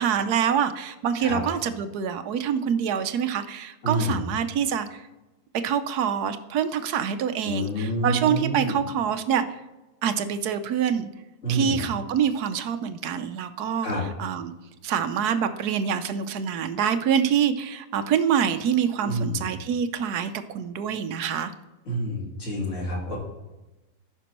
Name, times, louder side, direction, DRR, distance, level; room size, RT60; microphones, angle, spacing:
voice 1, 0.0-5.1 5.6-9.6 10.0-11.1 11.5-13.9 14.2-14.5 14.8-21.5, right 8 dB, 65° right, 10 dB, 1.0 m, -26 dB
voice 2, 3.8-4.2 7.4-8.8 11.4-11.8 13.8-14.0 19.0-19.5 21.9-23.2, right 1 dB, 40° left, -4 dB, 3.0 m, -28 dB
14.5 x 6.0 x 3.0 m, 1.1 s
omnidirectional pair, 2.1 m